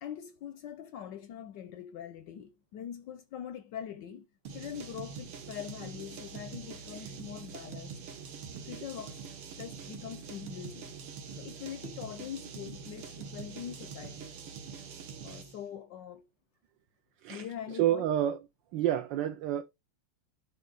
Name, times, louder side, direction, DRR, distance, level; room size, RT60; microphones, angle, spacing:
voice 1, 0.0-8.0 8.6-9.3 9.6-10.9 11.4-14.3 15.2-16.3 17.3-18.1, left 9 dB, 70° left, 1.1 m, -43 dB
sound 1, 4.5-15.6, right 6 dB, 90° right, 2.4 m, -44 dB
voice 2, 17.8-18.4 18.7-19.6, right 11 dB, 70° right, 1.2 m, -29 dB
11.5 x 4.2 x 3.9 m
omnidirectional pair, 2.4 m